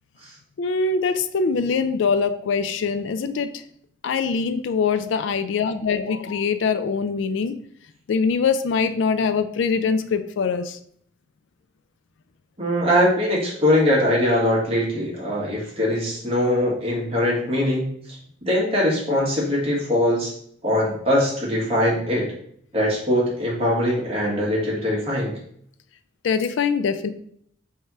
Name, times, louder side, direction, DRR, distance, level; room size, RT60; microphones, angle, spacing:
voice 1, 0.6-3.5 4.0-7.5 8.1-10.8 26.2-27.1, left 5 dB, 65° left, 11 dB, 0.3 m, -23 dB
voice 2, 12.6-17.9 18.4-20.3 20.6-22.3 22.7-25.3, left 1 dB, 30° right, -4 dB, 1.3 m, -21 dB
3.6 x 3.3 x 4.2 m, 0.64 s
head